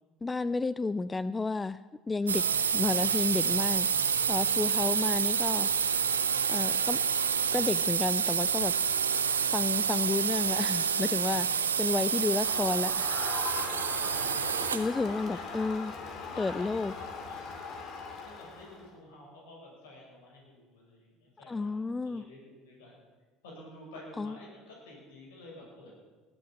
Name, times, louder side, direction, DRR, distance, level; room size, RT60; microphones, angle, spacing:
voice 1, 0.2-1.8 2.1-2.4 2.7-5.7 6.5-7.0 7.5-8.7 9.5-11.5 11.8-13.3 14.7-15.9 16.4-16.9 21.5-22.2 24.2-24.3, left 3 dB, 20° left, 16 dB, 0.4 m, -31 dB
sound 1, 2.3-15.0, right 7 dB, 90° right, 0.7 m, -28 dB
voice 2, 11.2-11.6 13.5-14.0 14.3-14.7 15.0-17.7 18.1-22.9 23.4-25.9, left 1 dB, 75° left, -2 dB, 6.5 m, -50 dB
Crowd, 12.1-18.9, left 4 dB, 55° left, 2.7 m, -40 dB
18.5 x 8.5 x 7.2 m, 1.3 s
hypercardioid pair, 65°, 0 cm